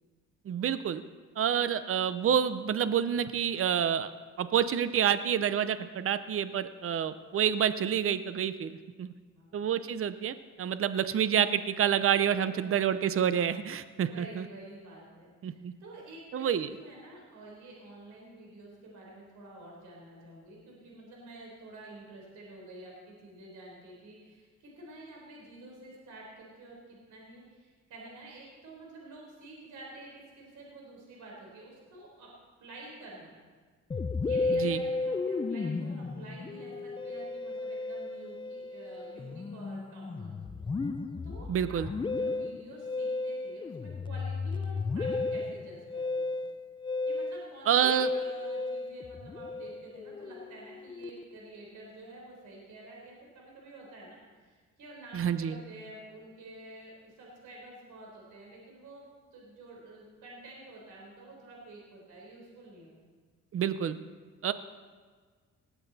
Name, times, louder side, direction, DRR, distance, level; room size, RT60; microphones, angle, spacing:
voice 1, 0.5-1.0 1.4-4.1 4.4-9.1 9.5-14.5 15.4-15.7 16.3-16.7 34.5-34.8 41.5-41.9 47.7-48.1 55.1-55.6 63.5-64.0 64.4-64.5, right 9 dB, 45° right, 13 dB, 0.7 m, -28 dB
voice 2, 14.1-32.3 32.6-33.3 34.2-40.3 41.2-41.8 42.2-46.4 47.1-59.1 59.3-62.9, right 2 dB, 80° right, -2 dB, 4.1 m, -49 dB
Musical instrument, 33.9-51.5, left 3 dB, 15° left, 0.4 m, -34 dB
19.0 x 8.2 x 4.2 m, 1.5 s
cardioid pair, 90°, 30 cm